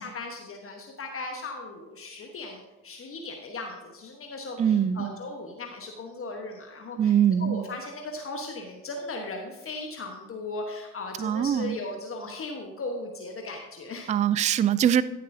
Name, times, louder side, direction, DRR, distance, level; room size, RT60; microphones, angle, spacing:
voice 1, 0.0-7.1 7.4-14.1, left 2 dB, 35° left, 2 dB, 1.3 m, -37 dB
voice 2, 4.6-5.1 7.0-7.6 11.2-11.8 14.1-15.0, right 9 dB, 20° right, 17 dB, 0.3 m, -23 dB
14.0 x 7.2 x 2.8 m, 1.1 s
hypercardioid pair, 55°, 37 cm